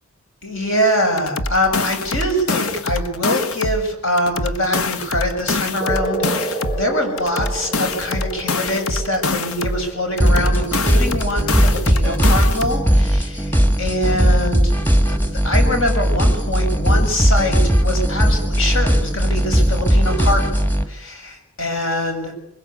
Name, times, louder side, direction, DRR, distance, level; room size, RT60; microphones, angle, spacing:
voice 1, 0.4-14.7 15.1-22.3, left 1 dB, 65° left, 4 dB, 7.0 m, -23 dB
sound 1, 1.2-3.8 4.2-6.8 7.2-9.8 10.2-12.8, left 3 dB, 85° left, 1.4 m, -24 dB
sound 2, 5.8-12.8, right 2 dB, 45° left, 4.0 m, -31 dB
sound 3, 10.2-20.9, equal, 10° left, 1.5 m, -17 dB
23.0 x 21.0 x 8.5 m, 0.72 s
head